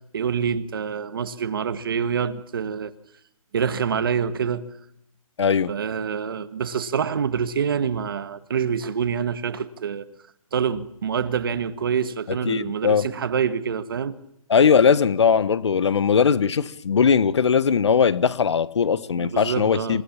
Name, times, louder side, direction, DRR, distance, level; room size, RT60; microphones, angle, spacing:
voice 1, 0.0-2.9 3.5-4.7 5.7-10.1 10.5-14.2 19.2-20.0, right 7 dB, 40° right, 1.4 m, -26 dB
voice 2, 5.4-5.7 12.5-13.0 14.5-20.0, left 6 dB, 50° left, 1.2 m, -19 dB
28.0 x 19.0 x 7.3 m
hypercardioid pair, 175°, 18 cm